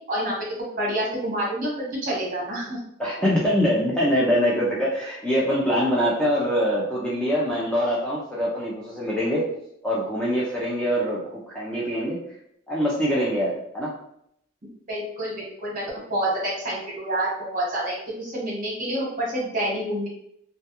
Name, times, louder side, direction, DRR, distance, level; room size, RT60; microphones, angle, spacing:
voice 1, 0.8-2.8 14.9-15.8 16.1-20.1, right 1 dB, 45° right, -4 dB, 0.9 m, -28 dB
voice 2, 3.0-9.5 9.8-12.2 12.7-13.9, equal, 5° left, -6 dB, 0.4 m, -24 dB
2.2 x 2.2 x 2.8 m, 0.73 s
head